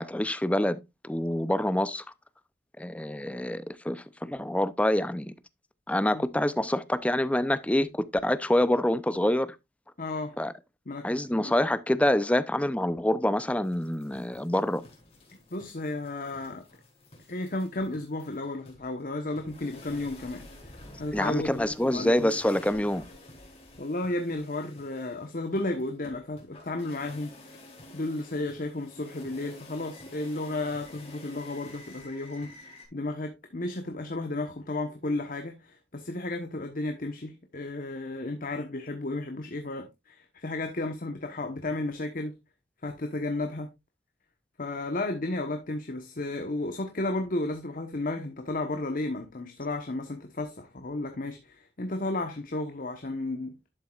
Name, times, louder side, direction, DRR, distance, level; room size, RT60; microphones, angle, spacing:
voice 1, 0.0-2.0 2.8-5.3 5.9-9.6 10.4-10.5 11.0-14.8 21.1-23.0, left 1 dB, 10° left, 0.6 m, -26 dB
voice 2, 10.0-10.4 10.9-11.6 15.5-16.6 17.3-22.3 23.8-27.5 27.9-42.4 42.8-43.7 44.6-53.5, left 2 dB, 50° left, 1.1 m, -33 dB
sound 1, 13.6-32.9, left 1 dB, 35° left, 4.2 m, -50 dB
11.5 x 7.6 x 2.4 m
head